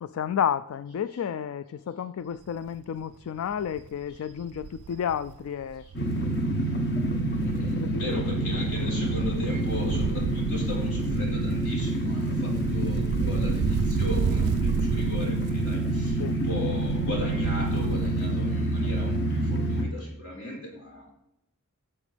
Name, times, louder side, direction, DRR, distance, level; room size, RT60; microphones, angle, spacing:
voice 1, 0.0-5.8 7.8-8.2 16.2-16.4, left 8 dB, 65° left, 15 dB, 0.3 m, -31 dB
Wind, 2.5-2.8 3.1-3.2 3.5-7.1 7.3-19.5 19.8-19.9, right 6 dB, 75° right, 0.3 m, -33 dB
sound 1, 5.9-19.8, right 1 dB, 50° left, 1.2 m, -27 dB
voice 2, 7.4-21.1, left 2 dB, 80° left, -2 dB, 4.6 m, -38 dB
15.5 x 7.2 x 3.4 m, 0.85 s
head